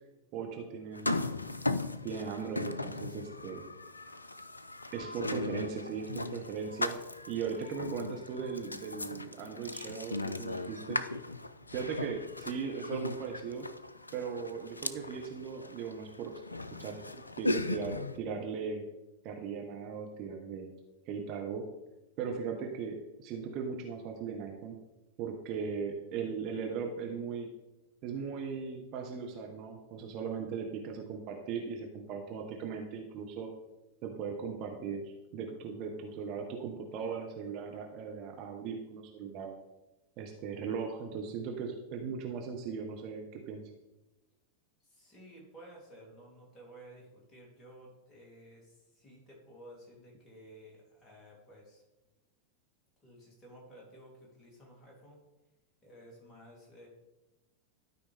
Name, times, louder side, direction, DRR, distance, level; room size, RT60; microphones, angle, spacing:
voice 1, 0.3-1.3 2.0-3.6 4.9-6.9 7.3-11.0 11.7-13.7 14.1-16.3 16.8-18.8 19.2-20.7 21.1-21.6 22.2-24.8 25.2-27.5 28.0-33.5 34.0-39.5 40.2-43.6, right 6 dB, 40° right, 2 dB, 1.0 m, -38 dB
sound 1, 0.9-18.2, left 2 dB, 80° left, 0.4 m, -38 dB
voice 2, 44.8-51.8 53.0-55.2 55.8-56.9, right 1 dB, 20° left, -3 dB, 2.9 m, -54 dB
12.0 x 4.9 x 3.4 m, 1.0 s
figure-of-eight pair, 90°, 0 cm